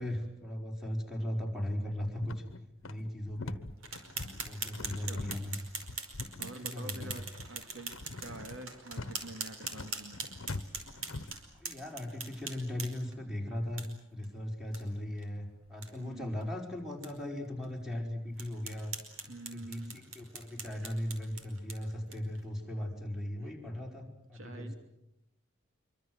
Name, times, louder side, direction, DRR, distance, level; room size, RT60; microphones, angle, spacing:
voice 1, 0.0-2.4 2.8-3.6 4.5-5.5 6.6-7.1 11.5-13.8 14.1-18.9 19.5-24.7, left 1 dB, ahead, 1 dB, 5.0 m, -38 dB
sound 1, 2.2-11.4, left 2 dB, 70° left, 1.1 m, -43 dB
sound 2, 3.8-13.2 13.8-13.9 14.2-14.3 14.7-14.8 15.2-15.3 15.7-15.9 16.4-16.5 17.0-17.1 17.6-17.7 18.4-22.4, right 4 dB, 90° right, 5.0 m, -42 dB
voice 2, 4.8-5.3 6.4-7.9 8.2-10.2 15.9-16.4 19.2-20.0 20.8-21.0 23.4-23.5 24.3-24.7, right 2 dB, 70° right, 6 dB, 2.9 m, -47 dB
25.5 x 24.5 x 7.9 m, 0.86 s
head